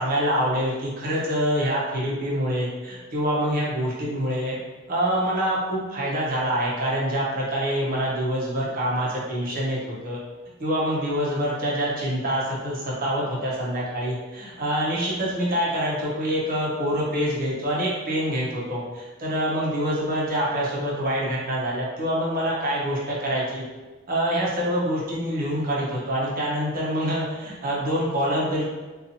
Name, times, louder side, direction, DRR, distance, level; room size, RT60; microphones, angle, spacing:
voice 1, 0.0-4.6 4.9-9.8 10.0-10.2 10.6-23.6 24.1-28.7, equal, 45° right, -5 dB, 0.6 m, -26 dB
2.6 x 2.3 x 2.7 m, 1.3 s
head